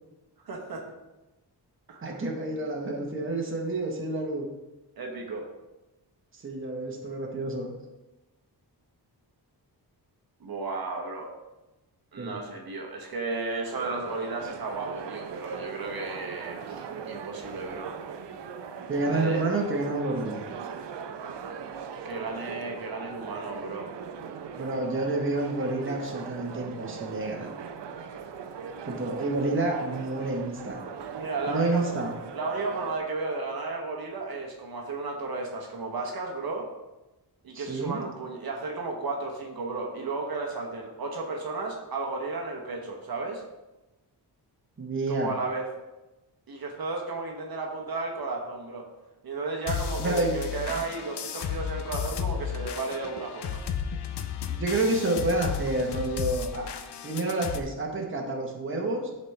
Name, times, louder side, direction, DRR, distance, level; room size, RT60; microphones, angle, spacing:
voice 1, 0.4-0.9 1.9-2.2 5.0-5.5 10.4-11.3 12.1-17.9 19.1-19.4 22.0-23.9 31.1-32.0 32.3-36.7 37.4-43.4 45.1-45.7 46.5-48.9 49.2-53.6, right 3 dB, 60° right, 1 dB, 1.1 m, -33 dB
voice 2, 2.0-4.5 6.3-7.7 12.2-12.4 18.9-20.4 24.5-27.5 28.8-30.8 31.5-32.1 37.5-38.0 44.8-45.3 50.0-50.4 50.7-50.8 54.5-56.7 57.0-59.1, right 2 dB, 30° right, 0 dB, 1.0 m, -29 dB
sound 1, 13.7-33.0, right 6 dB, 85° right, 0.6 m, -40 dB
sound 2, 49.7-57.6, left 7 dB, 70° left, 0.7 m, -33 dB
11.0 x 4.2 x 3.2 m, 1.0 s
wide cardioid pair, 175°, 41 cm